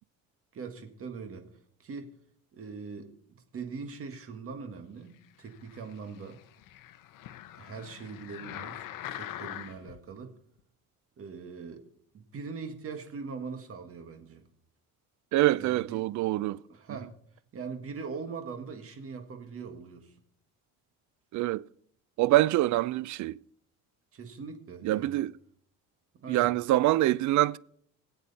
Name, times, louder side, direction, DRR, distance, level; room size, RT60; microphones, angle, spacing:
voice 1, 0.5-1.5 1.8-2.1 2.5-6.4 7.6-10.3 11.2-11.8 12.1-14.4 15.6-16.0 16.7-17.1 17.5-20.1 24.1-25.2 26.2-26.5, right 5 dB, 40° right, 1.8 m, -41 dB
sound 1, 5.4-10.0 10.6-10.7, left 12 dB, 65° left, 0.9 m, -43 dB
voice 2, 15.3-16.6 21.3-21.6 22.2-23.4 24.8-25.4 26.3-27.6, right 16 dB, 55° right, 0.4 m, -25 dB
23.0 x 8.0 x 4.2 m
cardioid pair, 135°, 35 cm